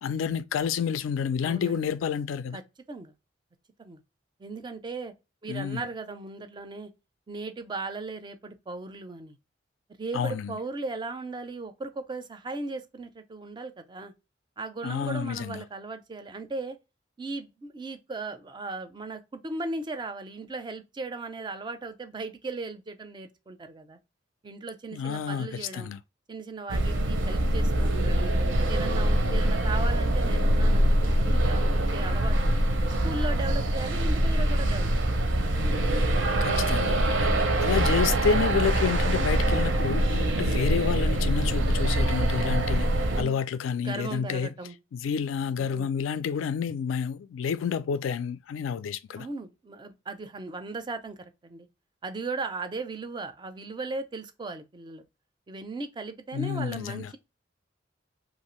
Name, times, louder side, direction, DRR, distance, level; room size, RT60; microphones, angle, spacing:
voice 1, 0.0-2.6 5.5-5.8 10.1-10.6 14.8-15.6 24.9-26.0 36.4-42.9 43.2-44.5 44.9-49.3 56.3-57.1, left 7 dB, 90° left, 0.3 m, -29 dB
voice 2, 1.4-1.9 2.5-2.6 2.9-3.1 3.8-4.0 4.4-5.1 5.4-6.9 7.3-9.4 10.0-14.1 14.6-16.8 17.2-24.0 24.4-25.9 26.3-28.3 28.7-32.6 33.0-35.2 35.7-35.9 43.0-43.4 43.8-44.8 45.6-45.9 49.2-51.7 52.0-55.0 55.5-57.2, right 3 dB, 25° right, 0.4 m, -37 dB
sound 1, 26.7-43.2, right 1 dB, 70° right, 0.6 m, -24 dB
2.7 x 2.4 x 2.9 m
head